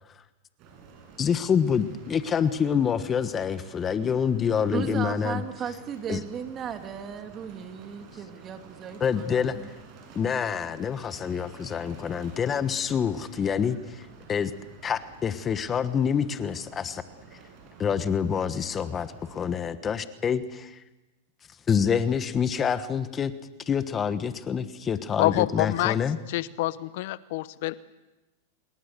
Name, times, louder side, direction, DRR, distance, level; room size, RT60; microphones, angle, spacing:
sound 1, 0.6-19.5, right 5 dB, 45° right, 7.6 m, -50 dB
voice 1, 1.2-5.4 6.1-6.2 9.0-9.6 10.1-14.0 14.3-14.5 14.8-17.0 17.8-20.8 21.7-23.3 23.7-26.2, left 7 dB, 25° left, 12 dB, 1.3 m, -27 dB
voice 2, 4.7-9.7, right 8 dB, 30° right, 6 dB, 2.5 m, -36 dB
voice 3, 25.2-26.0 26.3-27.7, left 17 dB, 60° left, 16 dB, 0.9 m, -26 dB
27.0 x 21.5 x 6.8 m, 1.1 s
hypercardioid pair, 115°, 0 cm